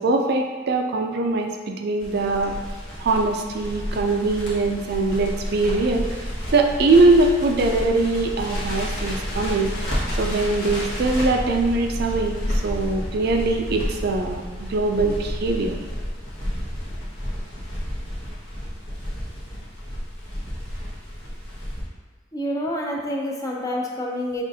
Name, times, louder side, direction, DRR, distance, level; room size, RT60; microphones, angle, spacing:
voice 1, 0.0-2.5 3.0-6.1 6.5-9.7 10.2-15.7, right 3 dB, 55° right, 3 dB, 0.4 m, -22 dB
Crackle, 2.0-21.8, equal, 60° left, 1.2 m, -30 dB
voice 2, 22.3-24.4, equal, 20° left, -2 dB, 0.5 m, -27 dB
6.0 x 2.5 x 2.7 m, 1.3 s
head